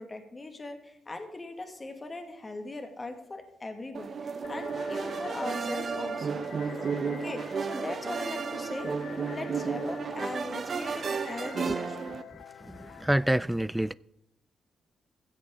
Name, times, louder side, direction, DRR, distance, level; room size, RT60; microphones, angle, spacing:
voice 1, 0.0-6.8 7.0-12.2, left 2 dB, 30° left, 2.0 m, -40 dB
sound 1, 3.9-12.2, right 5 dB, 50° right, 0.8 m, -33 dB
sound 2, 4.4-13.2, left 9 dB, 75° left, 0.6 m, -46 dB
voice 2, 12.6-13.9, right 1 dB, 5° right, 0.3 m, -27 dB
15.0 x 8.1 x 3.8 m
cardioid pair, 65°, 0 cm